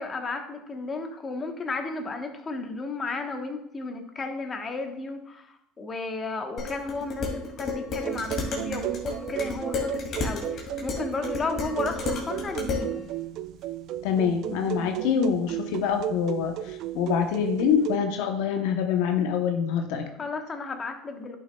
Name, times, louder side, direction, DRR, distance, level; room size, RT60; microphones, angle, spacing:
voice 1, 0.0-13.0 20.2-21.4, left 3 dB, 30° left, 4 dB, 1.1 m, -33 dB
Dishes pots and pans, 6.6-12.9, left 4 dB, 50° left, 2.4 m, -32 dB
sound 1, 7.9-18.0, right 12 dB, 65° right, 0.3 m, -34 dB
voice 2, 14.0-20.1, left 7 dB, 80° left, 5 dB, 0.8 m, -25 dB
11.0 x 6.2 x 2.3 m, 0.80 s
supercardioid pair, 100°, 0 cm